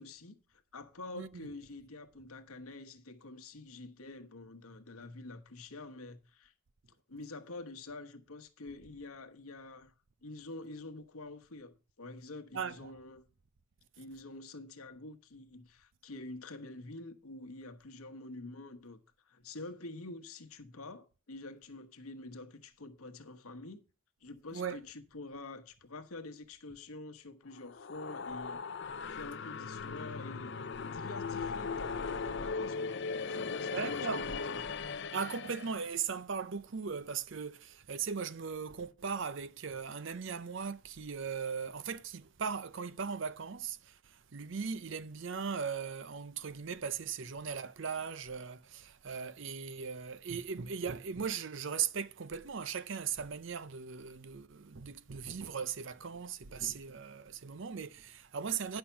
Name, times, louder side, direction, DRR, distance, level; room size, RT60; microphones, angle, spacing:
voice 1, 0.0-6.5 7.1-9.9 10.2-13.2 14.0-19.0 19.2-23.8 24.2-28.6 29.1-34.6, left 2 dB, 85° left, 1.2 m, -47 dB
voice 2, 12.5-12.9 24.5-24.8 33.7-34.3 35.1-58.8, right 6 dB, 55° right, 0.6 m, -38 dB
sound 1, 27.5-35.8, left 5 dB, 55° left, 0.6 m, -38 dB
10.0 x 5.7 x 5.7 m
head